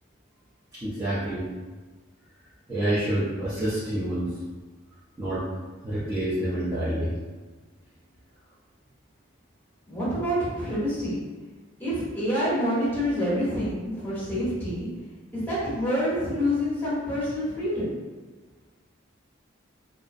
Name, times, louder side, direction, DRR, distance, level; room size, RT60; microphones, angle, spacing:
voice 1, 0.8-1.5 2.7-4.3 5.2-5.4 5.8-7.2, right 1 dB, 15° right, -13 dB, 0.5 m, -27 dB
voice 2, 9.9-11.2 11.8-14.9 15.3-18.0, equal, 10° left, -10 dB, 1.0 m, -27 dB
2.3 x 2.0 x 2.5 m, 1.3 s
head